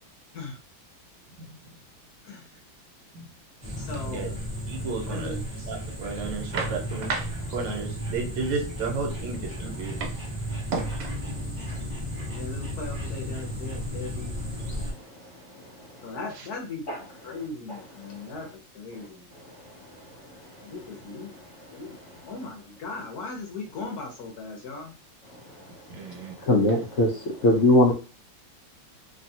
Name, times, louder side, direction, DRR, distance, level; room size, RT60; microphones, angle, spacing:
sound 1, 3.6-14.9, equal, 30° right, 0.5 m, -34 dB
voice 1, 3.8-4.3 5.0-5.4 9.6-9.7 12.3-14.4 14.8-14.9 16.0-18.5 18.7-19.4 20.6-21.3 21.7-22.0 22.3-24.9, left 3 dB, 65° left, 1.1 m, -38 dB
voice 2, 4.7-5.4 5.7-10.1 10.7-11.1 25.9-26.3, right 4 dB, 75° right, 1.5 m, -32 dB
voice 3, 26.4-27.1 27.4-27.9, left 2 dB, 90° left, 0.6 m, -19 dB
3.2 x 2.3 x 2.7 m
omnidirectional pair, 2.1 m